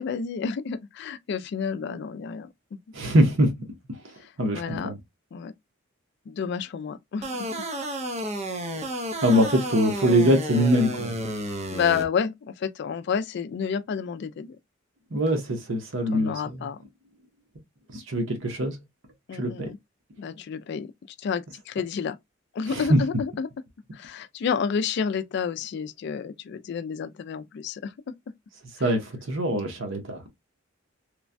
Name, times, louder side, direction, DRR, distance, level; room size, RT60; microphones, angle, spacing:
voice 1, 0.0-2.5 4.5-4.9 5.3-5.5 6.3-7.6 11.7-14.6 16.1-16.8 19.3-19.8 20.2-20.9 21.2-22.2 22.5-23.5 23.9-28.1 28.8-28.9, left 6 dB, 55° left, 0.3 m, -30 dB
voice 2, 2.9-3.5 4.4-5.0 9.2-11.2 15.1-16.7 17.9-18.8 19.4-19.7 22.7-23.0 28.8-30.2, equal, 65° right, 0.8 m, -23 dB
sound 1, 7.2-12.0, right 1 dB, 35° right, 0.6 m, -31 dB
3.0 x 2.2 x 2.5 m
head